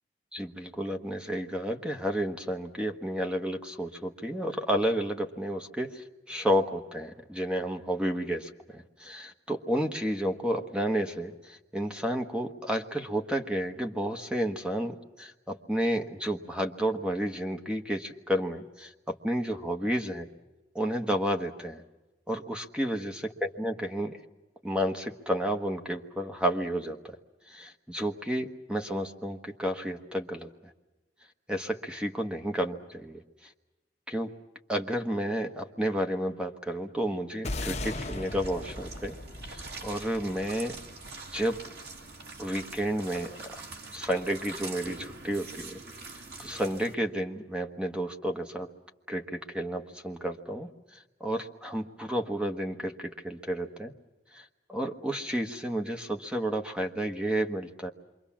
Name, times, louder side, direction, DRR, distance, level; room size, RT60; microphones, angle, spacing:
voice 1, 0.3-20.3 20.7-21.8 22.3-24.2 24.6-27.2 27.5-30.5 31.5-33.2 34.1-34.3 34.7-39.2 39.5-40.8 41.3-41.6 42.4-43.6 43.9-45.8 46.4-48.7 49.1-50.7 51.2-53.9 54.3-57.9, equal, 5° right, 4 dB, 1.3 m, -31 dB
sound 1, 37.4-41.9, left 2 dB, 40° left, 1.3 m, -38 dB
sound 2, 37.8-46.9, right 3 dB, 65° right, 2.4 m, -44 dB
27.5 x 24.0 x 7.3 m, 1.1 s
head